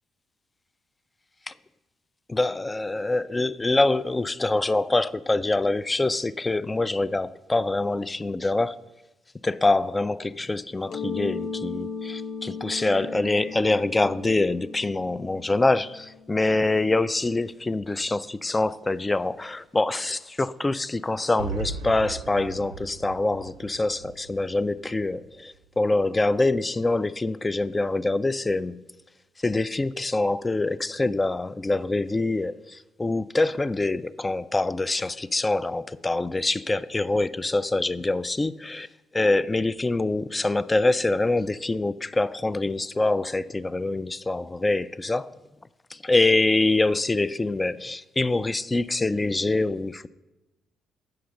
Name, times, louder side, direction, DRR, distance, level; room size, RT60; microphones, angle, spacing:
voice 1, 2.3-8.8 9.4-28.8 29.4-38.9 39.1-45.4 45.9-50.1, left 2 dB, 20° left, 0.3 m, -25 dB
Mallet percussion, 10.9-16.4, left 5 dB, 65° left, 0.6 m, -36 dB
sound 1, 21.4-25.3, right 5 dB, 90° right, 0.5 m, -37 dB
7.7 x 5.8 x 6.4 m
supercardioid pair, 60°, 0 cm